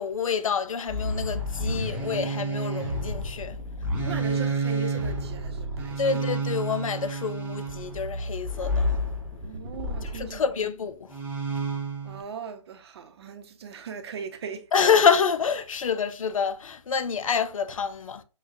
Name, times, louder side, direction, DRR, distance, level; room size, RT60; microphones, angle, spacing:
voice 1, 0.0-3.6 6.0-8.9 10.0-11.2 14.7-18.2, left 6 dB, 75° left, 0.5 m, -27 dB
sound 1, 0.9-10.4 11.1-12.2, right 1 dB, 10° right, 1.0 m, -30 dB
voice 2, 4.0-6.0 9.4-10.5 12.0-14.7, right 5 dB, 50° right, 0.7 m, -38 dB
6.0 x 2.3 x 2.6 m
figure-of-eight pair, 140°, 18 cm